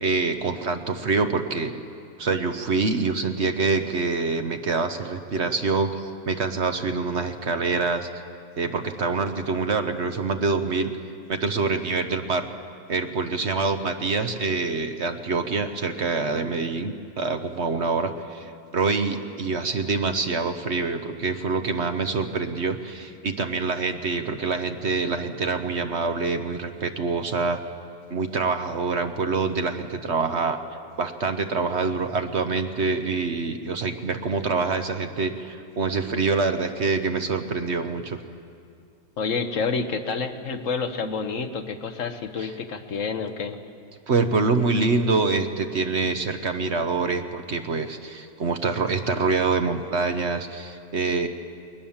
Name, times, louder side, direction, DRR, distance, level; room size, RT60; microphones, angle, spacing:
voice 1, 0.0-1.7 2.2-8.1 8.6-10.9 11.3-12.5 12.9-27.6 28.1-30.6 31.0-38.2 42.4-42.5 44.1-51.3, right 4 dB, 50° right, 7 dB, 1.1 m, -25 dB
voice 2, 39.2-43.6, left 5 dB, 55° left, 7 dB, 1.4 m, -28 dB
20.5 x 19.5 x 7.2 m, 2.3 s
omnidirectional pair, 1.7 m